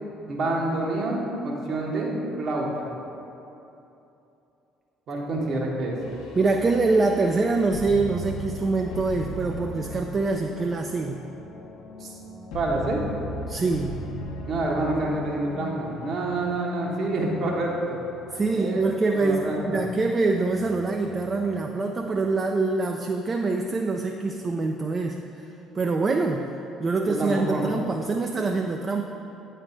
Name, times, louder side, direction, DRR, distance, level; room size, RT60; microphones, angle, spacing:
voice 1, 0.3-2.9 5.1-6.0 12.0-12.1 12.5-13.0 14.5-18.0 18.5-18.8 19.1-19.8 27.1-27.7, right 2 dB, 50° right, -2 dB, 1.1 m, -27 dB
sound 1, 6.0-22.0, left 1 dB, 60° left, 0.7 m, -38 dB
voice 2, 6.4-11.2 13.5-14.0 18.3-25.4 25.7-29.1, right 3 dB, 30° right, 3 dB, 0.3 m, -25 dB
8.8 x 3.3 x 4.3 m, 2.9 s
figure-of-eight pair, 50°, 0 cm